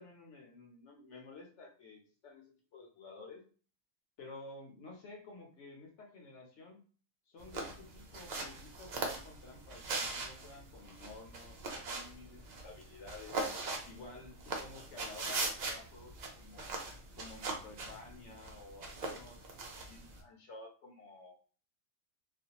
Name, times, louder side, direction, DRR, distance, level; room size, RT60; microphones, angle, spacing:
voice 1, 0.0-2.4 2.7-3.4 4.2-6.8 7.3-13.4 13.8-16.7 17.2-19.4 19.9-21.4, left 3 dB, 65° left, 1 dB, 0.9 m, -52 dB
sound 1, 7.4-20.2, right 3 dB, 90° right, 0.3 m, -41 dB
2.4 x 2.2 x 2.8 m, 0.39 s
omnidirectional pair, 1.4 m